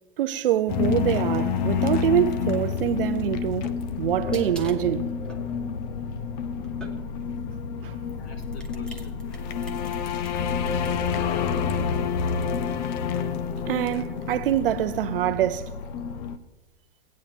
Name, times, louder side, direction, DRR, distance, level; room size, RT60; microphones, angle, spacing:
voice 1, 0.2-5.1 7.8-7.9 13.7-15.7, right 12 dB, 60° right, 0.6 m, -25 dB
sound 1, 0.7-16.4, left 6 dB, 45° left, 0.8 m, -28 dB
sound 2, 3.1-7.4 8.1-11.2, right 1 dB, 5° left, 1.1 m, -46 dB
voice 2, 8.2-9.2 10.2-11.2, left 3 dB, 80° left, 2.8 m, -48 dB
17.5 x 9.3 x 2.8 m
hypercardioid pair, 115°, 31 cm